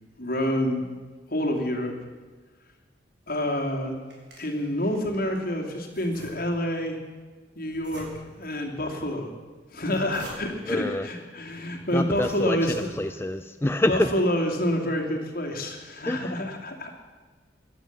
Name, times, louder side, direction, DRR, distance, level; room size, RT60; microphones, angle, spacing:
voice 1, 0.2-0.9 1.3-1.9 3.3-4.0 4.4-7.0 7.5-8.1 8.3-9.3 9.7-13.0 13.9-16.9, left 1 dB, 55° left, 2 dB, 2.8 m, -28 dB
sound 1, 3.9-5.5 5.9-6.8 7.7-8.5 9.7-10.7 11.5-11.6 12.0-13.4, equal, 85° right, 4.9 m, -46 dB
voice 2, 10.7-11.1 11.9-14.1 16.1-16.4, left 1 dB, 15° left, 8 dB, 0.4 m, -27 dB
16.5 x 11.5 x 7.5 m, 1.4 s
head